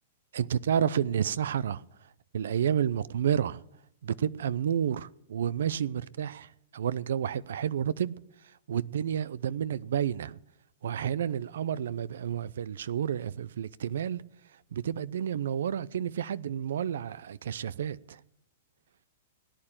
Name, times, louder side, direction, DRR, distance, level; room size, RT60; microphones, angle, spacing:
voice 1, 0.3-3.6 4.0-8.1 8.4-10.4 10.8-14.2 14.7-18.2, right 9 dB, 80° right, 0.5 m, -30 dB
17.5 x 9.0 x 8.8 m
hypercardioid pair, 140°, 0 cm